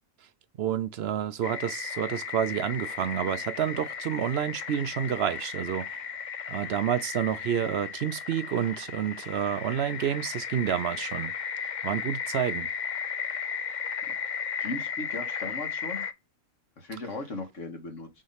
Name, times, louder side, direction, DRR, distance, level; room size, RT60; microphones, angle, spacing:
voice 1, 0.6-5.9 6.5-11.3 11.8-12.7, right 9 dB, 65° right, 0.7 m, -29 dB
sound 1, 1.4-16.1, left 7 dB, 45° left, 0.6 m, -35 dB
voice 2, 14.6-16.0 16.8-18.1, left 2 dB, 65° left, 2.0 m, -37 dB
6.3 x 3.0 x 5.5 m
omnidirectional pair, 1.4 m